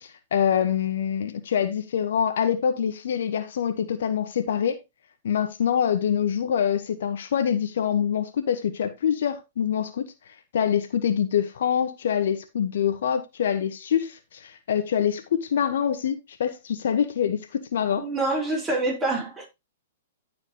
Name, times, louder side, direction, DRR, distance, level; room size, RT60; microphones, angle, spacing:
voice 1, 0.0-4.8 5.2-10.1 10.5-18.1, left 8 dB, 70° left, 1.3 m, -25 dB
voice 2, 18.0-19.5, right 2 dB, 15° right, 4.6 m, -26 dB
15.0 x 5.1 x 3.0 m
hypercardioid pair, 120°, 0 cm